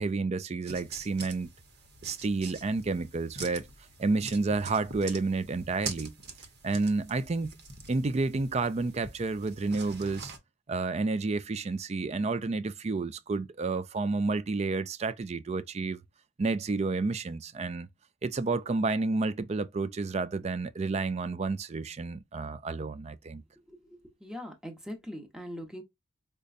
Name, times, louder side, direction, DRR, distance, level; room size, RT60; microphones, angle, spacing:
voice 1, 0.0-1.5 2.0-3.7 4.0-6.1 6.6-7.6 7.9-10.3 10.7-16.0 16.4-17.9 18.2-23.4, right 3 dB, 30° right, 0.4 m, -30 dB
sound 1, 0.7-10.4, right 4 dB, 50° right, 1.0 m, -44 dB
voice 2, 23.7-25.8, equal, 5° right, 1.0 m, -42 dB
5.1 x 2.2 x 2.4 m
head